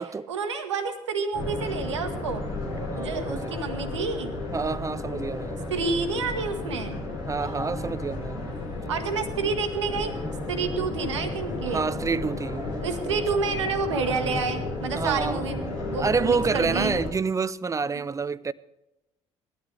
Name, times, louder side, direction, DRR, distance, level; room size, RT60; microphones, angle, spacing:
voice 1, 0.3-2.4 2.9-4.3 5.7-7.0 8.9-10.1 10.5-11.8 12.8-16.9, right 4 dB, 80° right, 1.4 m, -29 dB
sound 1, 1.3-17.1, left 2 dB, 75° left, 5.0 m, -33 dB
voice 2, 2.9-3.6 4.5-5.6 7.3-8.4 11.7-12.7 14.9-15.5 16.0-18.5, right 5 dB, 20° right, 0.6 m, -28 dB
19.5 x 12.5 x 3.3 m
figure-of-eight pair, 50°, 15 cm